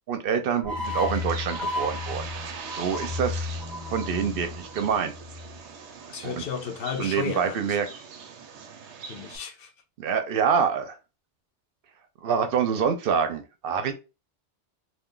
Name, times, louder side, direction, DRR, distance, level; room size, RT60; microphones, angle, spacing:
voice 1, 0.1-2.3 2.7-3.6 3.9-5.1 6.2-6.3 7.0-7.9 10.0-11.0 12.2-13.9, right 7 dB, 60° right, 0.7 m, -26 dB
sound 1, 0.6-5.8, left 3 dB, ahead, 0.5 m, -33 dB
Bird, 0.8-9.4, right 6 dB, 90° right, 0.9 m, -42 dB
voice 2, 6.1-7.8 9.1-9.7, left 6 dB, 60° left, 0.7 m, -34 dB
2.5 x 2.3 x 3.7 m
omnidirectional pair, 1.1 m